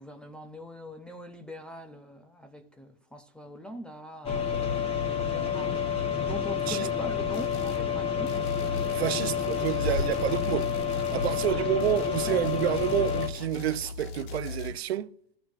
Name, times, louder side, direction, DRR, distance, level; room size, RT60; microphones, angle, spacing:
voice 1, 0.0-5.7 6.1-9.3 9.9-10.2 10.4-10.6 11.4-11.7 12.2-12.5, equal, 5° left, 0.4 m, -43 dB
sound 1, 4.2-13.3, left 7 dB, 20° left, 1.0 m, -29 dB
sound 2, 7.3-7.9 8.3-14.7, left 4 dB, 55° left, 0.8 m, -39 dB
voice 2, 8.9-10.7 11.1-15.1, right 12 dB, 90° right, 0.7 m, -29 dB
14.5 x 6.1 x 2.4 m
supercardioid pair, 145°, 30 cm